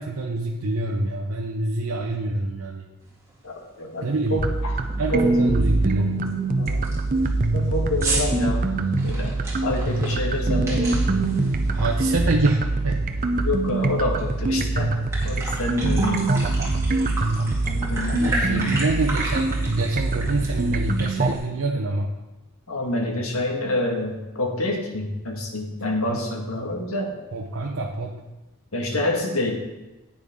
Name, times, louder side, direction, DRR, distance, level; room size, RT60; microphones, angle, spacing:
voice 1, 0.0-2.9 4.0-4.4 5.0-6.3 11.7-13.2 18.2-22.1 26.1-26.2 26.6-26.7 27.3-28.2, right 2 dB, 75° right, 0 dB, 0.7 m, -26 dB
sound 1, 3.3-3.4 3.8-4.1 4.4-4.5 4.9-5.2 5.6-5.7 6.3-6.4 6.7-12.6 12.9-14.2 14.6-14.7 14.9-21.4, right 2 dB, 15° right, 2.0 m, -33 dB
voice 2, 3.4-4.7 5.1-5.7 6.5-7.0 7.5-8.7 9.0-11.1 13.4-14.9 15.2-16.2 17.4-18.8 22.7-27.1 28.7-29.5, left 2 dB, 85° left, 1 dB, 1.7 m, -28 dB
sound 2, 4.4-21.4, right 2 dB, 40° right, 0.6 m, -24 dB
10.0 x 8.9 x 3.6 m, 1.0 s
head